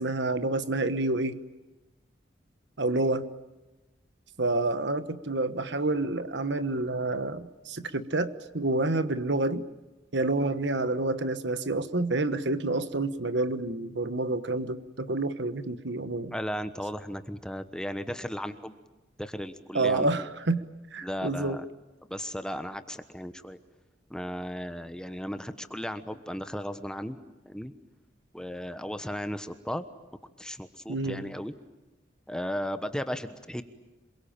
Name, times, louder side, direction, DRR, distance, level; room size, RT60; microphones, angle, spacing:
voice 1, 0.0-1.4 2.8-3.3 4.4-9.6 10.1-16.3 19.7-20.6 20.9-21.6 30.9-31.3, right 2 dB, 65° right, 12 dB, 1.3 m, -28 dB
voice 2, 16.3-18.7 19.2-20.1 21.0-21.6 22.1-23.6 24.1-27.2 27.5-27.7 28.3-29.8 30.4-31.5 32.3-33.6, equal, 5° left, 10 dB, 1.1 m, -35 dB
27.0 x 23.0 x 8.9 m, 1.1 s
head